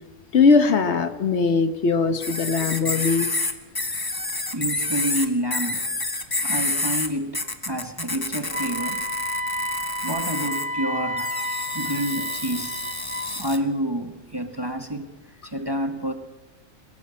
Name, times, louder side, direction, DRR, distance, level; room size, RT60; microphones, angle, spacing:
voice 1, 0.3-3.3, left 4 dB, 65° left, 1.3 m, -20 dB
sound 1, 2.2-7.1 7.3-10.6 11.2-13.6, left 2 dB, 20° left, 1.2 m, -29 dB
voice 2, 4.5-5.8 6.3-9.0 10.0-12.9 13.4-15.1 15.4-16.1, right 1 dB, 20° right, 1.1 m, -29 dB
Wind instrument woodwind instrument, 8.5-13.3, equal, 70° right, 1.4 m, -30 dB
21.5 x 15.0 x 8.7 m
omnidirectional pair, 1.3 m